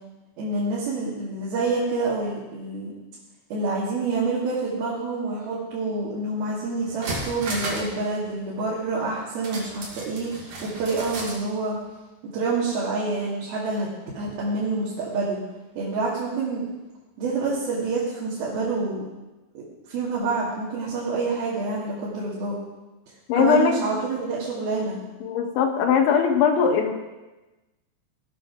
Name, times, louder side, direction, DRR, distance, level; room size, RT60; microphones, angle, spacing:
voice 1, 0.4-2.9 3.5-11.8 12.3-13.9 14.2-15.4 15.7-16.7 17.2-19.0 19.5-19.6 19.9-22.6 23.4-25.0, right 3 dB, 60° right, -7 dB, 4.2 m, -27 dB
sound 1, 6.4-6.5 6.8-8.0 8.2-8.3 9.4-11.4 11.7-11.8, right 2 dB, 45° right, 3.3 m, -33 dB
voice 2, 23.3-23.7 25.2-26.9, left 7 dB, 85° left, 4 dB, 3.8 m, -20 dB
18.5 x 8.5 x 6.2 m, 1.1 s
omnidirectional pair, 5.2 m